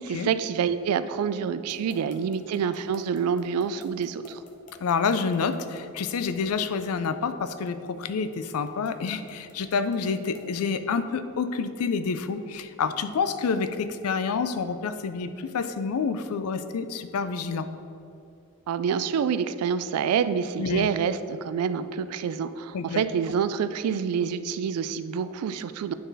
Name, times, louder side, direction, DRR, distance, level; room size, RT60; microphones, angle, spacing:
voice 1, 0.0-4.4 18.7-25.9, right 7 dB, 85° right, 13 dB, 0.3 m, -27 dB
sound 1, 1.7-10.6, left 3 dB, 35° left, 0.8 m, -52 dB
voice 2, 4.8-17.7 20.6-20.9 22.7-23.0, left 5 dB, 75° left, 11 dB, 0.4 m, -28 dB
9.4 x 3.9 x 4.0 m, 2.6 s
head